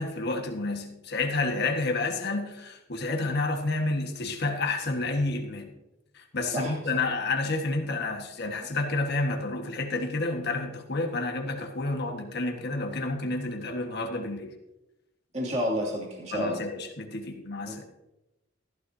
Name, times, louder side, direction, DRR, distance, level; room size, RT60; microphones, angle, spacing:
voice 1, 0.0-5.7 6.1-14.5 16.3-17.8, left 2 dB, 55° left, 4 dB, 1.5 m, -30 dB
voice 2, 15.3-16.6 17.6-17.8, equal, 35° right, -3 dB, 2.5 m, -30 dB
14.5 x 12.0 x 2.8 m, 0.94 s
head